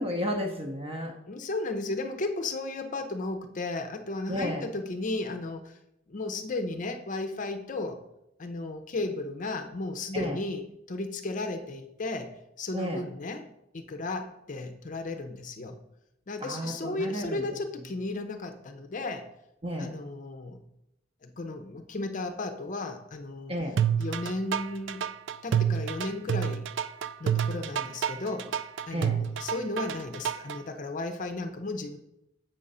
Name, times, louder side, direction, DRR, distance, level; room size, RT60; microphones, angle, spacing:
voice 1, 0.0-1.1 4.3-4.7 10.1-10.4 12.7-13.0 16.4-17.4 19.6-20.0 23.5-23.8 28.9-29.2, equal, 30° right, 1 dB, 0.7 m, -32 dB
voice 2, 1.3-5.8 6.1-8.0 8.4-12.3 12.6-13.5 13.7-15.8 16.3-19.2 19.8-20.6 21.2-23.5 24.0-25.0 25.4-26.7 27.2-32.0, left 2 dB, 45° left, 7 dB, 0.5 m, -34 dB
sound 1, 23.8-30.6, right 8 dB, 70° right, 0.3 m, -28 dB
7.7 x 3.8 x 5.4 m, 0.83 s
head